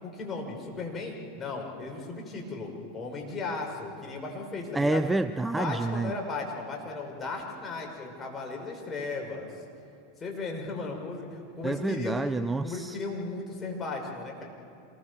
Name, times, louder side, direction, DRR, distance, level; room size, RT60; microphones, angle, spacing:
voice 1, 0.0-5.0 5.6-9.5 10.2-12.2 12.6-14.4, left 3 dB, 25° left, 5.6 m, -36 dB
voice 2, 4.7-6.1 11.6-13.0, right 2 dB, 10° right, 0.5 m, -28 dB
27.0 x 20.5 x 7.0 m
hypercardioid pair, 90°, 0 cm